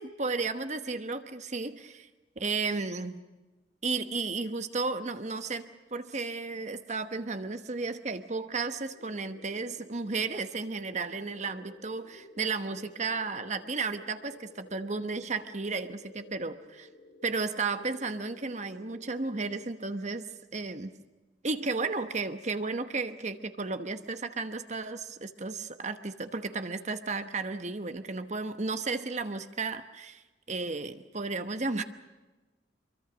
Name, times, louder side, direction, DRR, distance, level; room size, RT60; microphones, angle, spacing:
voice 1, 0.0-2.1 2.4-3.2 3.8-16.9 17.2-20.9 21.4-30.2 30.5-31.8, right 4 dB, 40° right, 9 dB, 1.1 m, -33 dB
sound 1, 8.9-19.5, left 1 dB, 75° left, 6.2 m, -53 dB
25.0 x 23.5 x 6.2 m, 1.1 s
head